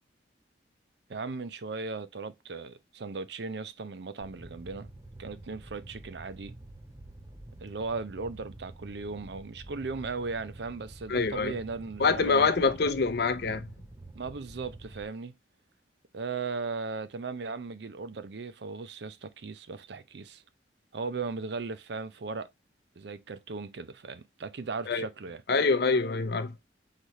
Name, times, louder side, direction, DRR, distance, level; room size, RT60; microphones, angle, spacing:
voice 1, 1.1-4.9 5.2-6.6 7.6-12.7 14.1-15.3 16.1-20.4 20.9-22.5 23.0-25.4, right 4 dB, 65° right, 0.5 m, -37 dB
Fire, 4.2-15.0, right 1 dB, 20° right, 0.6 m, -48 dB
voice 2, 11.1-11.6 12.0-13.7 24.9-25.1 25.5-26.5, left 4 dB, 60° left, 0.6 m, -25 dB
4.0 x 3.2 x 4.0 m
head